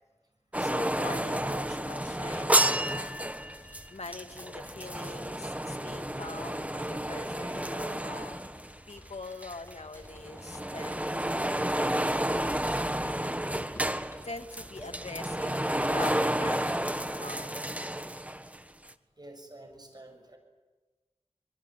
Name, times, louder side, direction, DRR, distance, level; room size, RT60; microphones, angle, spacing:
sound 1, 0.5-9.2 9.4-18.6 18.9-19.0, right 1 dB, 10° right, 1.3 m, -31 dB
voice 1, 0.6-3.2 3.9-8.4 8.9-11.0 11.3-12.6 14.2-15.6 15.9-17.7, left 3 dB, 80° left, 5 dB, 2.1 m, -44 dB
sound 2, 1.8-16.8, equal, 25° left, 7.9 m, -53 dB
voice 2, 13.4-14.2 14.7-15.0 19.2-20.4, right 1 dB, 40° right, 5 dB, 7.1 m, -50 dB
24.0 x 23.0 x 9.0 m, 1.2 s
wide cardioid pair, 50°, 11 cm